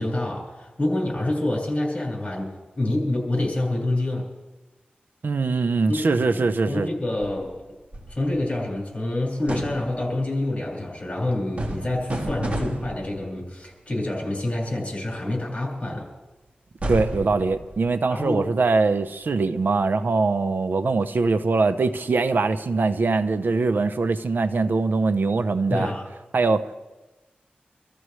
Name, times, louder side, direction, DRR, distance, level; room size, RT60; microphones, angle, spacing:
voice 1, 0.0-4.3 5.9-7.6 8.1-16.1 18.1-18.4 25.7-26.1, left 1 dB, 40° left, 6.2 m, -27 dB
voice 2, 5.2-6.9 16.9-25.9 26.3-26.7, right 3 dB, 70° right, 0.7 m, -22 dB
sound 1, 7.2-8.6 9.5-10.3 11.6-13.5 16.8-18.4, right 1 dB, 40° right, 2.8 m, -32 dB
26.0 x 14.0 x 3.2 m
wide cardioid pair, 80°, 3 cm